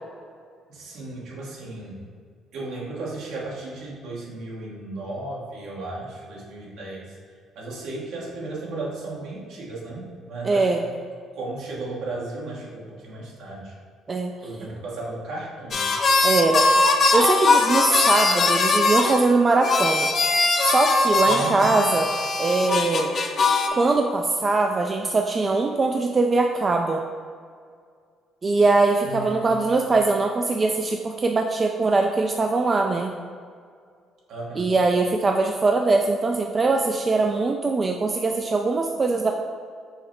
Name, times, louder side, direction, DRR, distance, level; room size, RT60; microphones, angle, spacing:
voice 1, 0.7-2.0 2.5-7.2 7.5-10.9 11.3-13.7 14.4-15.9 21.2-21.8 29.0-29.6 34.3-34.7, right 2 dB, 70° right, -4 dB, 1.2 m, -34 dB
voice 2, 10.4-10.8 14.1-14.3 16.2-16.7 17.1-20.1 20.6-22.1 22.4-23.1 23.7-27.0 28.4-33.2 34.6-39.3, right 3 dB, 35° right, 3 dB, 0.3 m, -21 dB
sound 1, 15.7-19.2 19.6-23.7, left 3 dB, 50° left, 0.5 m, -21 dB
5.6 x 2.1 x 4.2 m, 2.1 s
hypercardioid pair, 60°, 0 cm